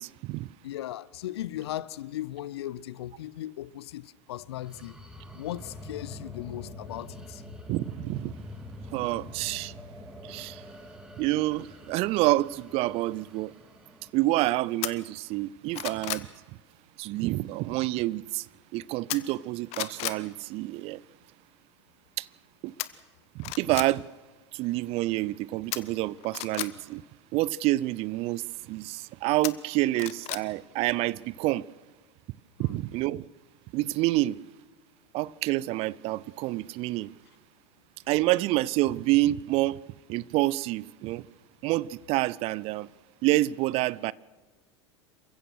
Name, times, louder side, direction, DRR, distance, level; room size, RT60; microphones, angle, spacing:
voice 1, 0.0-0.5 7.7-8.3 8.9-9.7 10.2-10.6 11.2-13.5 14.1-16.3 17.0-18.5 18.7-21.0 22.2-22.3 22.6-22.7 23.4-24.1 24.5-27.0 27.3-31.7 32.6-33.3 33.7-34.4 35.1-37.1 38.1-39.8 40.1-41.2 41.6-42.9 43.2-44.1, right 17 dB, 45° right, 0.6 m, -28 dB
voice 2, 0.6-5.0 5.3-7.4 32.6-32.8, left 13 dB, 65° left, 0.7 m, -37 dB
sound 1, 4.4-14.1, left 1 dB, 5° right, 3.0 m, -45 dB
sound 2, 14.8-14.9 15.4-16.3 19.1-19.4 19.7-20.2 22.8-22.9 23.4-23.9 25.7-26.7 29.4-30.4 30.8-30.9, left 18 dB, 45° left, 1.2 m, -33 dB
28.0 x 15.5 x 6.3 m
figure-of-eight pair, 85°, 15 cm